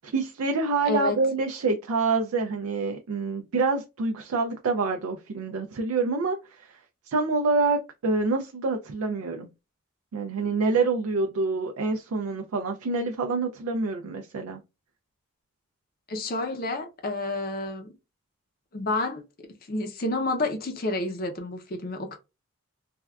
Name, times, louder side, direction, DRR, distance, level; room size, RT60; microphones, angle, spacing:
voice 1, 0.0-6.8 7.1-9.5 10.1-14.6, right 3 dB, 75° right, 0.4 m, -27 dB
voice 2, 0.9-1.2 16.1-17.9 18.7-19.2 19.7-22.2, left 2 dB, 40° left, 0.5 m, -29 dB
3.4 x 2.2 x 2.3 m
head